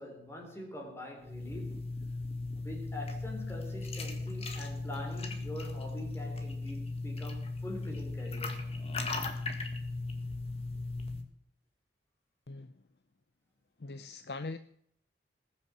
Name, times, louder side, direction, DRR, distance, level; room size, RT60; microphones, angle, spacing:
voice 1, 0.0-1.9 2.6-8.7, left 1 dB, 15° left, 3.8 m, -44 dB
sound 1, 1.2-11.2, left 3 dB, 35° left, 1.8 m, -37 dB
voice 2, 12.5-12.8 13.8-14.6, left 3 dB, 65° left, 0.6 m, -41 dB
20.0 x 7.1 x 7.8 m
head